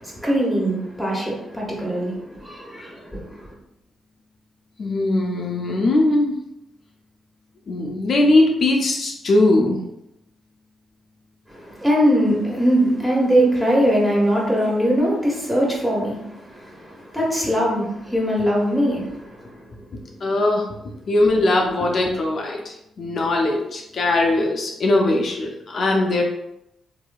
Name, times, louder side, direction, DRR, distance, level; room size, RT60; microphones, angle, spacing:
voice 1, 0.0-3.2 11.5-19.5, equal, 5° right, -4 dB, 1.3 m, -21 dB
voice 2, 4.8-6.4 7.7-9.8 20.2-20.6 21.1-26.2, left 2 dB, 60° left, 0 dB, 0.4 m, -20 dB
2.9 x 2.7 x 2.3 m, 0.84 s
supercardioid pair, 60°, 0 cm